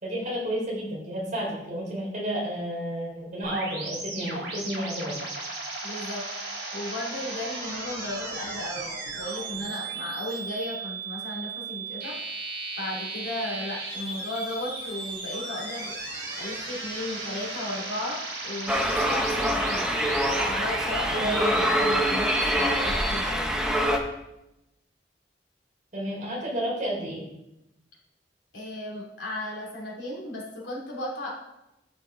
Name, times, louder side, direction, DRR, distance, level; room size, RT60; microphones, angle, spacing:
voice 1, 0.0-5.2 21.1-21.6 25.9-27.3, equal, 45° right, -4 dB, 3.5 m, -31 dB
sound 1, 3.4-23.2, right 3 dB, 75° right, 3.2 m, -36 dB
voice 2, 5.8-6.2 6.7-12.1 12.8-15.9 16.4-19.9 20.5-21.3 21.6-23.5 28.5-31.3, left 1 dB, 80° left, -3 dB, 2.9 m, -35 dB
sound 2, 18.7-24.0, equal, 5° right, 0.9 m, -25 dB
12.0 x 5.4 x 3.9 m, 0.89 s
head